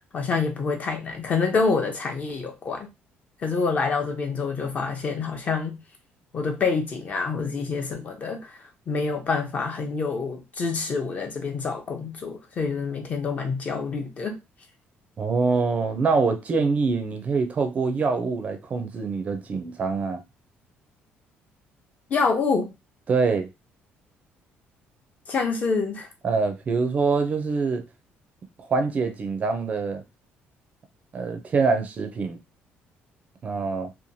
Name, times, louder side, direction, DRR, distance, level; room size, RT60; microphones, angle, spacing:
voice 1, 0.1-2.9 3.4-5.8 6.3-14.4 22.1-22.7 25.3-26.1, left 4 dB, 35° left, 0.6 m, -27 dB
voice 2, 15.2-20.2 23.1-23.5 26.2-27.8 28.7-30.0 31.1-32.4 33.4-33.9, right 4 dB, 35° right, 0.4 m, -24 dB
2.9 x 2.2 x 2.6 m
cardioid pair, 145°, 4 cm